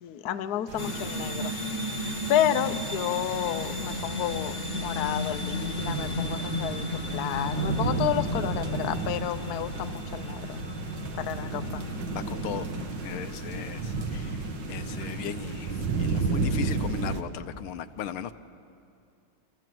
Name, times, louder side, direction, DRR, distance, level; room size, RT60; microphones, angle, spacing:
voice 1, 0.0-1.6 2.0-6.9 7.1-10.6 11.1-11.8, left 11 dB, 60° left, 9 dB, 1.1 m, -31 dB
sound 1, 0.7-17.2, right 4 dB, 60° right, 1.9 m, -33 dB
sound 2, 0.8-16.2, left 3 dB, 35° left, 1.6 m, -35 dB
voice 2, 12.1-12.7 13.0-18.3, left 9 dB, 80° left, 10 dB, 1.7 m, -38 dB
29.0 x 26.5 x 7.7 m, 2.6 s
omnidirectional pair, 2.4 m